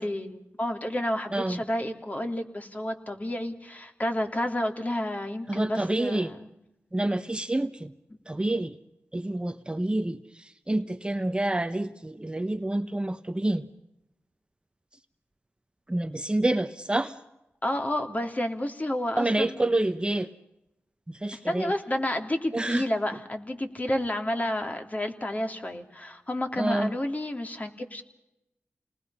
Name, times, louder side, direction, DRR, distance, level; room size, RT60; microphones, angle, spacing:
voice 1, 0.0-6.5 17.6-19.5 21.3-28.0, left 1 dB, 30° left, 4 dB, 3.0 m, -30 dB
voice 2, 1.3-1.6 5.5-6.3 6.9-7.9 8.3-8.7 9.1-13.7 15.9-17.1 19.2-20.3 21.1-21.7 22.5-22.8 26.6-26.9, right 1 dB, 20° right, 10 dB, 0.9 m, -28 dB
28.5 x 20.0 x 5.7 m, 0.89 s
cardioid pair, 45°, 5 cm